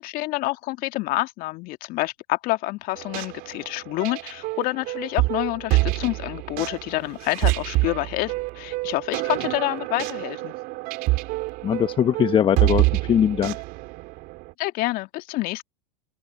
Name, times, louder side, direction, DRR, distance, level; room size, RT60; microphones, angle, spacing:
voice 1, 0.0-10.5 14.6-15.6, left 20 dB, 45° left, 2.0 m, -28 dB
sound 1, 3.0-14.5, right 22 dB, 50° right, 4.4 m, -27 dB
voice 2, 11.6-13.6, left 9 dB, 25° left, 1.1 m, -21 dB
open air
hypercardioid pair, 95°, 20 cm